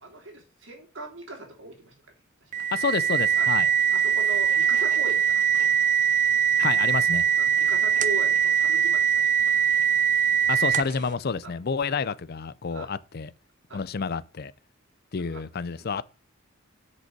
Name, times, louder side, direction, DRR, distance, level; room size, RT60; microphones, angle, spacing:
voice 1, 0.0-1.9 2.9-3.0 3.4-3.5 3.9-5.4 7.4-9.3 11.4-11.5 12.7-12.9 13.7-13.8 15.3-15.4 15.8-15.9, right 2 dB, 65° right, 3.0 m, -39 dB
sound 1, 2.5-11.1, right 8 dB, 40° right, 0.6 m, -22 dB
voice 2, 2.7-3.7 6.6-7.3 10.5-13.3 13.7-14.5 15.1-16.0, left 5 dB, 50° left, 0.5 m, -29 dB
6.3 x 5.3 x 6.7 m
head